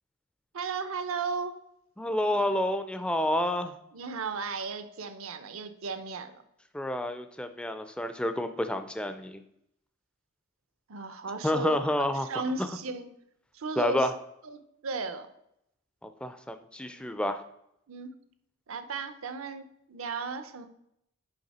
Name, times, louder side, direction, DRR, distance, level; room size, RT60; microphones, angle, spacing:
voice 1, 0.5-1.6 3.9-6.4 10.9-13.1 13.5-14.1 14.4-15.3 17.9-18.1 18.7-20.7, right 4 dB, 75° right, 10 dB, 0.6 m, -35 dB
voice 2, 2.0-3.7 6.7-9.4 11.4-12.3 12.6-12.7 13.8-14.1 16.0-17.4, left 1 dB, 5° left, 9 dB, 0.3 m, -29 dB
6.6 x 5.6 x 4.2 m, 0.77 s
head